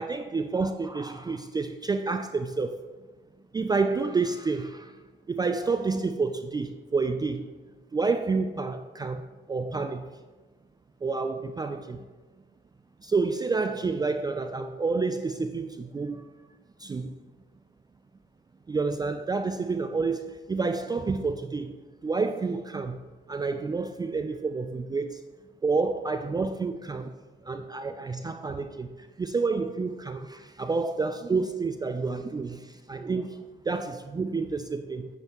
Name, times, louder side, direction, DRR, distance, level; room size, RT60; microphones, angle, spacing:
voice 1, 0.0-2.8 3.5-4.9 5.3-7.5 7.9-10.1 11.0-12.1 13.0-16.3 16.8-17.2 18.7-21.7 22.0-23.0 23.3-25.2 25.6-27.2 27.4-35.1, right 4 dB, 20° right, 8 dB, 0.3 m, -29 dB
9.5 x 5.4 x 3.0 m, 1.3 s
cardioid pair, 90°, 20 cm